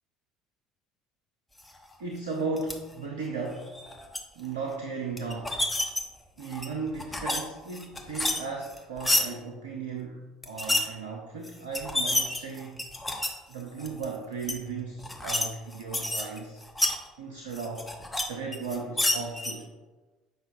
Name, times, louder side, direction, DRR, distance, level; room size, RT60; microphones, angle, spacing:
voice 1, 2.0-4.0 4.3-5.6 6.4-12.9 13.5-16.6 17.2-17.9 18.3-19.7, right 4 dB, 75° right, 0 dB, 0.7 m, -36 dB
sound 1, 2.6-2.7 3.6-4.2 5.2-6.0 6.4-7.4 7.7-9.2 10.4-10.8 11.4-11.5 11.7-13.3 13.8-14.0 14.4-14.5 15.0-15.4 15.7-17.0 17.5-18.2 18.5-19.5, left 1 dB, 10° left, 0.9 m, -28 dB
7.9 x 5.5 x 2.6 m, 1.2 s
figure-of-eight pair, 60°, 0 cm